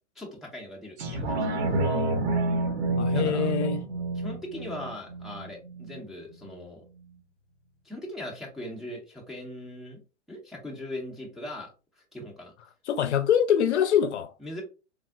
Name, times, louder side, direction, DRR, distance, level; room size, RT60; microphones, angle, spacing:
voice 1, 0.2-1.5 3.1-3.5 4.2-6.8 7.8-10.0 10.3-12.5 14.4-14.6, left 1 dB, ahead, 0.5 m, -40 dB
sound 1, 1.0-6.0 6.5-6.6, right 2 dB, 65° right, 1.0 m, -28 dB
voice 2, 3.0-3.8 12.9-14.3, left 9 dB, 70° left, 0.5 m, -24 dB
3.4 x 2.0 x 2.3 m
hypercardioid pair, 115°, 36 cm